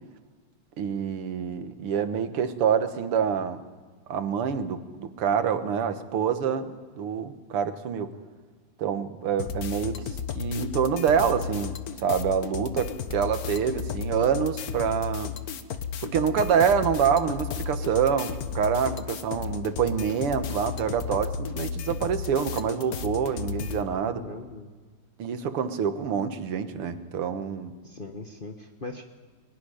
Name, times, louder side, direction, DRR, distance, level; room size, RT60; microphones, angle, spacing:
voice 1, 0.8-3.6 4.1-8.1 8.8-15.3 16.0-24.2 25.2-27.7, right 7 dB, 80° right, 9 dB, 2.2 m, -26 dB
sound 1, 9.4-23.8, left 7 dB, 55° left, 1.2 m, -33 dB
voice 2, 24.1-24.7 27.8-29.0, left 2 dB, 35° left, 3 dB, 1.0 m, -40 dB
24.0 x 18.5 x 10.0 m, 1.5 s
omnidirectional pair, 2.4 m